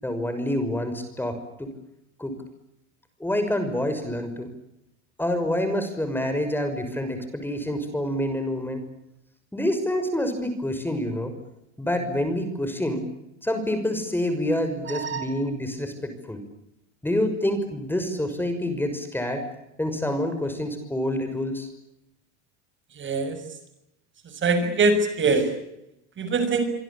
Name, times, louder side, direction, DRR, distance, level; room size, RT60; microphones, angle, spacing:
voice 1, 0.0-1.7 2.2-2.3 3.2-4.5 5.2-8.8 9.5-11.3 11.8-13.0 13.4-16.4 17.0-19.4 19.8-21.7, left 1 dB, 5° left, 8 dB, 6.2 m, -27 dB
voice 2, 14.9-15.3 23.0-23.4 24.4-25.5 26.2-26.6, right 3 dB, 35° right, 10 dB, 6.8 m, -23 dB
26.5 x 25.0 x 8.8 m, 0.85 s
supercardioid pair, 110°, 35 cm